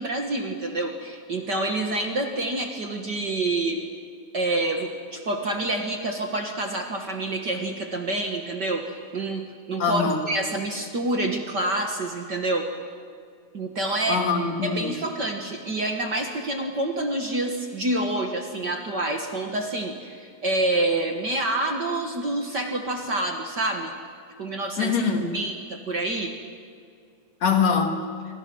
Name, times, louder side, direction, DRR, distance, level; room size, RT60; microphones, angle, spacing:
voice 1, 0.0-3.9 4.3-12.7 13.5-14.3 14.6-23.9 24.4-25.0 25.3-26.3, right 2 dB, 45° right, 3 dB, 1.8 m, -27 dB
voice 2, 9.8-10.2 14.1-15.0 24.8-25.3 27.4-28.0, left 5 dB, 65° left, 3 dB, 3.3 m, -23 dB
26.5 x 24.5 x 6.2 m, 2.3 s
omnidirectional pair, 3.3 m